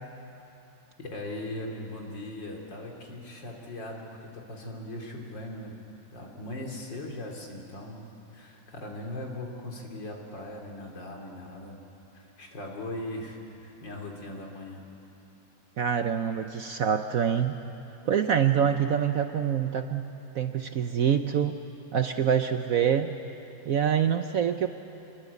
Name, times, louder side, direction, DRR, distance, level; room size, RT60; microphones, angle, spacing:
voice 1, 1.0-5.7 6.1-8.0 8.3-11.8 12.1-14.9, left 1 dB, 70° left, 0 dB, 3.7 m, -39 dB
voice 2, 15.8-17.6 18.1-20.1 20.3-21.6 21.9-23.1 23.6-24.7, right 8 dB, 60° right, 7 dB, 1.0 m, -25 dB
25.5 x 22.5 x 8.4 m, 2.9 s
omnidirectional pair, 2.1 m